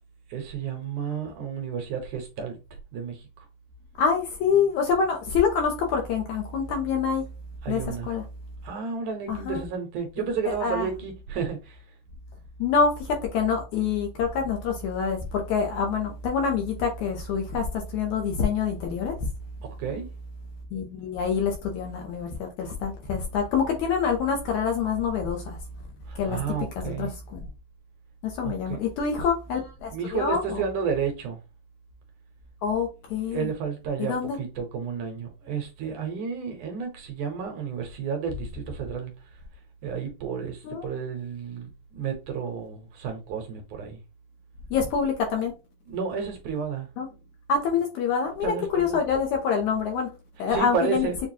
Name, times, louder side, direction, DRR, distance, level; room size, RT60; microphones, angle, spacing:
voice 1, 0.3-2.6 2.9-3.5 7.6-8.1 8.6-11.9 19.6-20.1 26.1-27.1 28.4-28.8 29.1-29.2 29.9-31.4 33.3-39.4 39.8-44.0 45.9-46.9 48.4-49.0 50.5-51.2, right 6 dB, 70° right, 2.1 m, -32 dB
voice 2, 4.0-7.3 7.7-8.2 9.3-9.6 10.5-10.9 12.6-19.3 20.7-25.6 26.2-27.4 28.2-30.6 32.6-33.5 34.0-34.4 40.6-40.9 44.7-45.5 47.0-47.1 47.5-50.1 50.4-51.1, left 6 dB, 75° left, 1.9 m, -26 dB
6.7 x 2.3 x 2.8 m
omnidirectional pair, 4.0 m